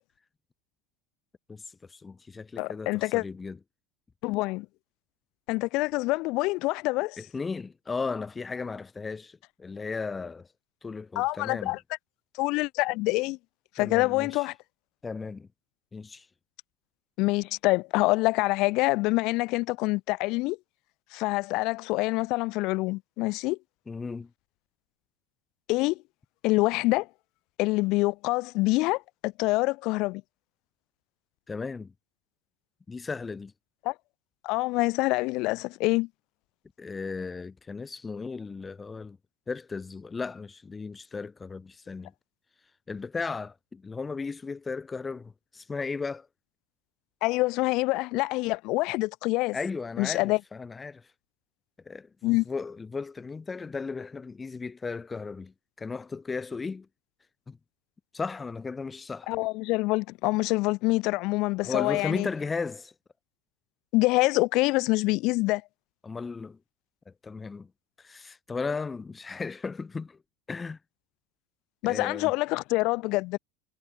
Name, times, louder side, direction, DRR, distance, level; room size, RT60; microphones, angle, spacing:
voice 1, 1.5-3.6 7.2-10.5 10.8-11.8 13.8-14.5 15.0-15.5 15.9-16.3 23.9-24.3 31.5-31.9 32.9-33.5 36.8-39.2 39.5-42.1 42.9-46.3 49.5-51.1 51.9-56.9 57.5-57.6 58.1-59.3 61.6-62.9 66.0-66.6 67.1-67.7 68.0-70.2 70.5-70.8 71.8-72.3, left 4 dB, 20° left, 0.7 m, -35 dB
voice 2, 2.6-3.2 4.2-4.7 5.5-7.2 11.2-11.8 12.4-13.4 13.8-14.5 17.2-20.6 21.1-23.6 25.7-26.0 26.4-27.1 27.6-30.2 33.8-33.9 34.4-36.1 47.2-49.6 50.0-50.4 52.2-52.4 59.3-62.3 63.9-65.6 71.8-73.4, left 22 dB, 60° left, 0.9 m, -26 dB
supercardioid pair, 105°, 0 cm